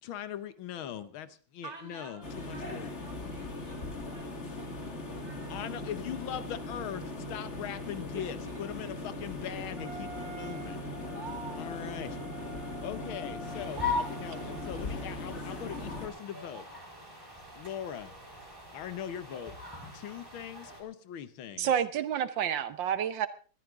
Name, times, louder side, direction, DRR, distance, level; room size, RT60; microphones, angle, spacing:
voice 1, 0.0-2.9 5.5-10.9 11.5-12.2 12.8-16.7 17.6-18.1 18.7-19.6 19.9-21.7, left 10 dB, 85° left, 1.8 m, -40 dB
voice 2, 1.6-5.7 8.0-9.2 10.4-11.9, right 4 dB, 45° right, 3.0 m, -49 dB
sound 1, 2.2-16.1, left 2 dB, 35° left, 2.1 m, -39 dB
Wind instrument woodwind instrument, 9.8-15.0, right 3 dB, 65° left, 7.3 m, -47 dB
sound 2, 13.4-20.8, left 4 dB, 10° right, 4.8 m, -40 dB
voice 3, 21.6-23.3, right 9 dB, 70° right, 1.6 m, -29 dB
20.5 x 13.0 x 3.6 m
omnidirectional pair, 2.2 m